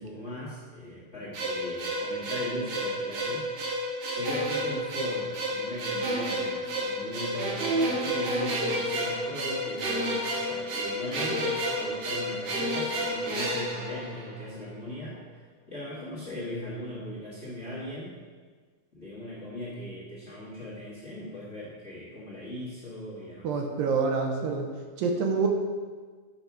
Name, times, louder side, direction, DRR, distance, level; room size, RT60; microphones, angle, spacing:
voice 1, 0.0-3.4 4.0-15.2 15.7-18.2 18.9-23.5, left 1 dB, 50° left, -8 dB, 0.8 m, -39 dB
sound 1, 1.3-14.6, right 1 dB, 55° right, 1.8 m, -30 dB
voice 2, 23.4-24.7 25.0-25.5, right 4 dB, 80° right, 3 dB, 2.4 m, -26 dB
8.1 x 5.9 x 4.8 m, 1.5 s
omnidirectional pair, 4.4 m